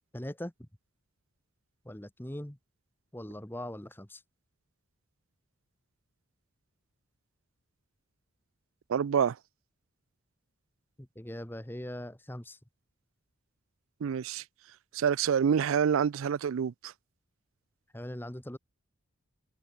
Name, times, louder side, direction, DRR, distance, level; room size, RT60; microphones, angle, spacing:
voice 1, 0.1-0.7 1.8-2.6 3.1-4.2 11.0-12.6 17.9-18.6, left 1 dB, 10° left, 1.1 m, -41 dB
voice 2, 8.9-9.4 14.0-14.4 14.9-16.9, right 7 dB, 75° right, 0.4 m, -27 dB
open air
head